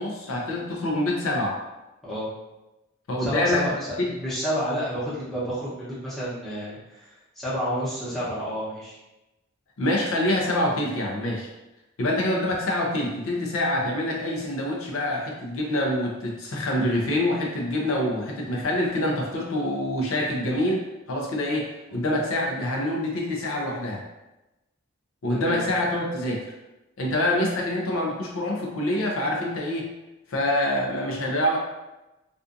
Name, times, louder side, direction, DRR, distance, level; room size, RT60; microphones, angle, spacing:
voice 1, 0.0-1.6 3.1-3.7 4.1-4.2 9.8-11.5 12.0-24.0 25.2-26.5 27.0-29.9 30.3-31.6, left 1 dB, 75° left, -1 dB, 0.5 m, -26 dB
voice 2, 3.2-9.0 25.3-25.6, equal, ahead, -11 dB, 0.8 m, -30 dB
2.5 x 2.4 x 2.5 m, 1.0 s
head